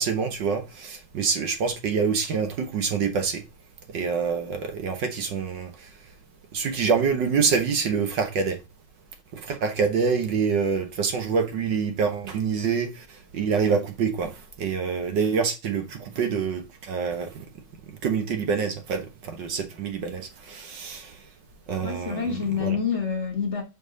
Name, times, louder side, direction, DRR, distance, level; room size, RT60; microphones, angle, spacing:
voice 1, 0.0-3.4 3.9-5.7 6.5-8.6 9.5-12.9 13.3-14.3 14.6-16.6 16.9-17.3 18.0-19.0 19.3-21.1 21.7-22.3 22.6-22.8, right 5 dB, 60° right, 1.6 m, -26 dB
voice 2, 21.8-23.6, left 6 dB, 40° left, 1.3 m, -27 dB
5.4 x 4.8 x 6.3 m
omnidirectional pair, 2.4 m